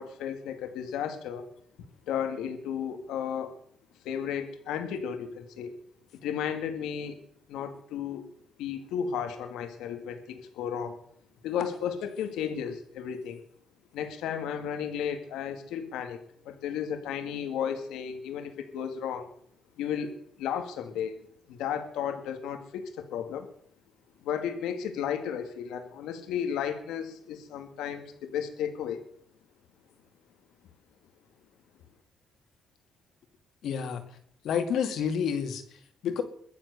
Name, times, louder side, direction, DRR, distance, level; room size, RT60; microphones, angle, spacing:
voice 1, 0.0-1.5 2.1-3.5 4.0-5.7 6.2-7.2 7.5-8.3 8.6-11.0 11.4-13.4 13.9-19.3 19.8-21.1 21.5-23.5 24.2-29.0, left 8 dB, 90° left, 7 dB, 2.0 m, -34 dB
voice 2, 33.6-34.0 34.4-36.2, left 7 dB, 75° left, 7 dB, 2.4 m, -29 dB
22.5 x 7.5 x 6.7 m, 0.66 s
cardioid pair, 90°, 0 cm